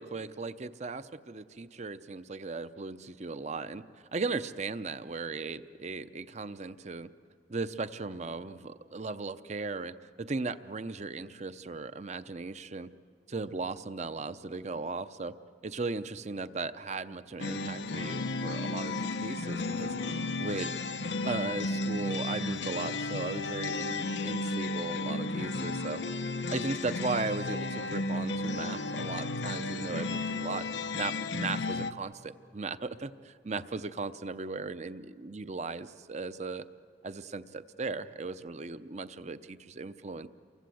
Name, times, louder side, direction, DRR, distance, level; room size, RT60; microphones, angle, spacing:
voice 1, 0.0-3.8 4.1-7.1 7.5-12.9 13.3-15.3 15.6-19.9 20.4-20.7 21.2-26.0 26.5-30.7 30.9-36.6 37.0-40.3, right 3 dB, 40° right, 13 dB, 0.7 m, -37 dB
sound 1, 17.4-31.9, left 2 dB, 90° left, 0.9 m, -33 dB
29.0 x 24.0 x 7.8 m, 2.3 s
head